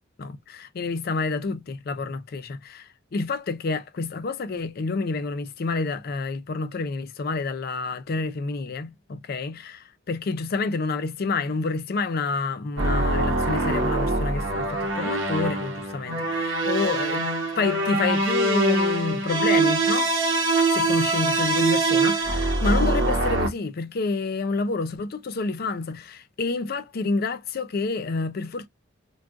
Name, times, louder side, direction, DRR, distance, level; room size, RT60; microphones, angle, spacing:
voice 1, 0.2-17.2 17.6-20.1 20.7-28.7, left 3 dB, 50° left, 0.4 m, -28 dB
sound 1, 12.8-23.5, right 2 dB, 75° right, 0.8 m, -23 dB
2.5 x 2.3 x 3.4 m
head